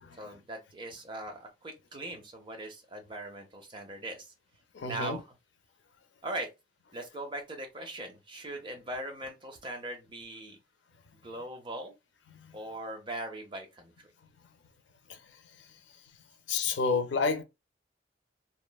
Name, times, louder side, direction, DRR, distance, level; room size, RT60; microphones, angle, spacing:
voice 1, 0.1-4.3 4.8-5.3 6.2-6.5 6.9-10.6 11.2-11.9 12.5-14.1, right 1 dB, 25° right, 0.7 m, -40 dB
voice 2, 4.7-5.2 12.3-12.6 15.1-15.2 16.5-17.4, left 4 dB, 90° left, 0.5 m, -30 dB
2.9 x 2.1 x 2.2 m
head